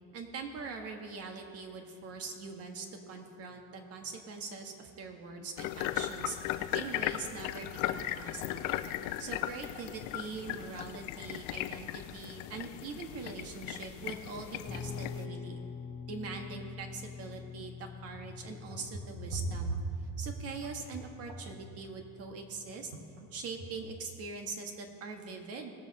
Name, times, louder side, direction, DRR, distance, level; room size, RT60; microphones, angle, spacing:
voice 1, 0.1-6.4 6.7-8.8 9.2-15.6 16.1-19.8 20.2-22.9 23.3-25.7, right 4 dB, 50° right, 4 dB, 1.7 m, -42 dB
sound 1, 5.6-15.2, left 13 dB, 70° left, 0.6 m, -37 dB
Guitar, 14.6-23.9, left 6 dB, 25° left, 3.3 m, -46 dB
sound 2, 18.0-21.6 22.9-23.3 23.6-24.0, right 3 dB, 75° right, 1.5 m, -39 dB
18.5 x 7.3 x 4.2 m, 2.3 s
supercardioid pair, 115°, 31 cm